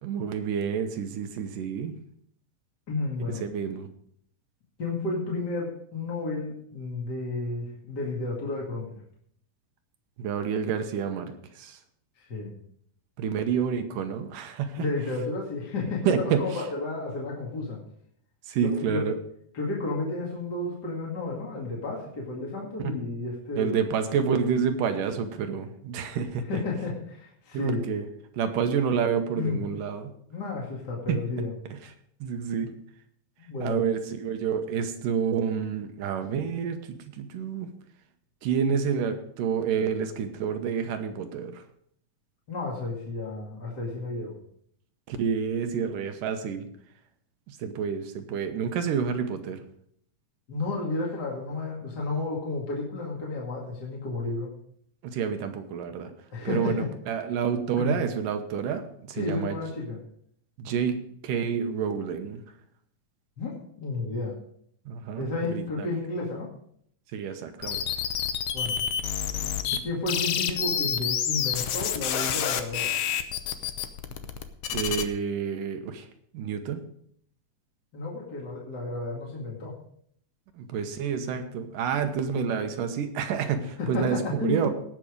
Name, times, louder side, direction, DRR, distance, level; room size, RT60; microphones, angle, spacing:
voice 1, 0.0-2.0 3.4-3.9 10.2-11.8 13.2-14.9 16.1-16.5 18.5-19.1 22.8-22.9 23.6-26.6 27.5-28.1 28.3-30.1 31.1-31.2 31.7-31.8 32.2-32.7 33.6-37.7 38.4-41.6 45.1-46.7 47.5-49.6 55.0-56.1 56.4-56.7 57.1-59.6 60.6-62.4 64.9-66.0 67.1-67.8 74.7-76.1 76.3-76.8 80.6-84.7, right 7 dB, 80° right, 7 dB, 2.6 m, -29 dB
voice 2, 2.9-3.4 4.8-9.0 12.2-12.5 14.8-17.8 18.6-19.1 19.5-23.9 26.5-27.8 29.4-29.6 30.3-31.5 33.4-33.9 42.5-44.4 50.5-54.5 56.3-56.9 57.8-58.0 59.1-60.0 60.6-60.7 63.4-64.4 65.2-66.5 68.5-68.8 69.7-72.9 77.9-79.8 83.8-84.6, left 3 dB, 35° left, -3 dB, 2.4 m, -32 dB
sound 1, 67.6-69.8 70.1-75.0, left 9 dB, 80° left, 1.3 m, -28 dB
18.0 x 6.0 x 5.1 m, 0.66 s
omnidirectional pair, 3.8 m